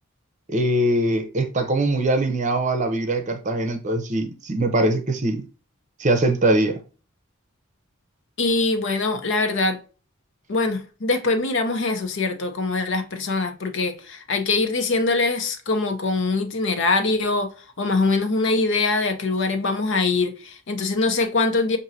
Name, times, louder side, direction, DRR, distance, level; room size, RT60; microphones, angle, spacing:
voice 1, 0.5-5.5 6.0-6.8, right 1 dB, 35° right, 0.7 m, -22 dB
voice 2, 8.4-9.8 10.5-17.5 17.8-21.8, left 3 dB, 60° left, 0.8 m, -23 dB
6.2 x 2.7 x 2.7 m
head